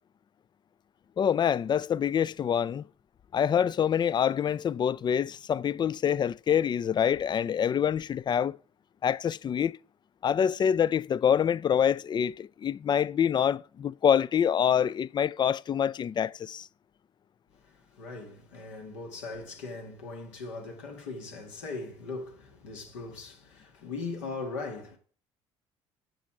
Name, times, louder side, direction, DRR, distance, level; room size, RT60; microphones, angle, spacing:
voice 1, 1.2-2.8 3.3-8.6 9.0-9.8 10.2-16.7, left 8 dB, 30° left, 0.3 m, -26 dB
voice 2, 18.0-25.0, left 3 dB, 75° left, 1.8 m, -39 dB
7.7 x 6.1 x 6.0 m
hypercardioid pair, 55°, 15 cm